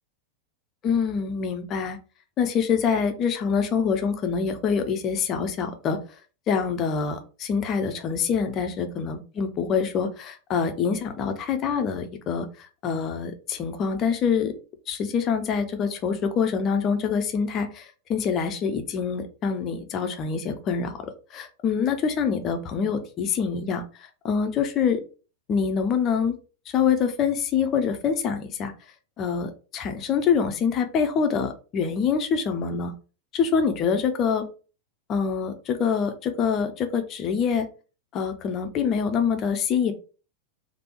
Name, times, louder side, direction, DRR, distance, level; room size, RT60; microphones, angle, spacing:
voice 1, 0.8-2.0 2.4-6.0 6.5-14.5 14.9-23.8 24.2-25.0 25.5-26.3 26.7-28.7 29.2-32.9 33.3-34.5 35.1-37.7 38.1-39.9, left 6 dB, 30° left, 7 dB, 0.5 m, -25 dB
3.3 x 2.1 x 2.9 m, 0.35 s
figure-of-eight pair, 90°, 0 cm